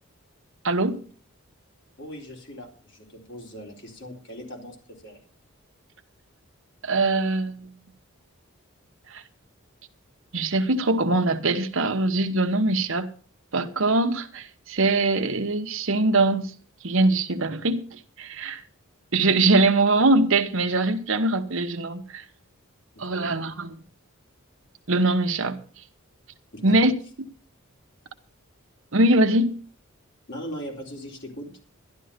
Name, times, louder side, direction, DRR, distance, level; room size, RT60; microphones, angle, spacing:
voice 1, 0.6-1.1 6.8-7.7 9.1-9.2 10.3-13.1 13.5-16.6 16.8-18.6 19.1-22.2 23.0-23.8 24.9-25.6 26.6-27.3 28.9-29.6, right 2 dB, 60° right, 1.1 m, -22 dB
voice 2, 2.0-5.2 22.9-23.3 26.5-26.8 30.3-31.5, equal, 55° left, 4.1 m, -39 dB
12.5 x 12.0 x 5.1 m
head